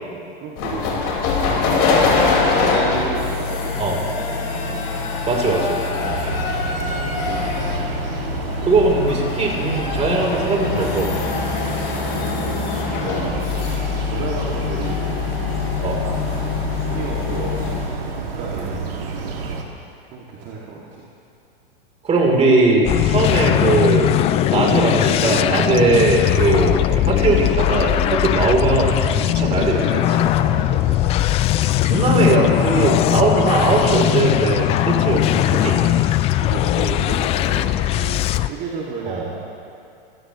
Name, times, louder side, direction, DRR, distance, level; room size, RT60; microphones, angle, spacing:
voice 1, 0.0-1.1 2.4-4.9 5.8-6.4 6.8-7.8 12.3-13.4 14.0-15.2 15.6-16.1 16.8-19.6 20.1-21.0 30.4-31.3 36.3-39.4, right 4 dB, 40° right, -5 dB, 2.5 m, -33 dB
sound 1, 0.6-17.9, left 4 dB, 45° left, 5.1 m, -23 dB
voice 2, 5.3-5.8 8.6-11.1 15.8-16.0 22.0-24.2 24.4-30.3 31.8-35.9 39.1-39.3, right 3 dB, 20° right, -1 dB, 3.7 m, -19 dB
sound 2, 6.0-19.6, right 5 dB, 70° right, 2.5 m, -30 dB
sound 3, 22.8-38.5, left 14 dB, 20° left, 0.3 m, -19 dB
27.0 x 16.0 x 3.2 m, 2.6 s
hypercardioid pair, 120°, 30 cm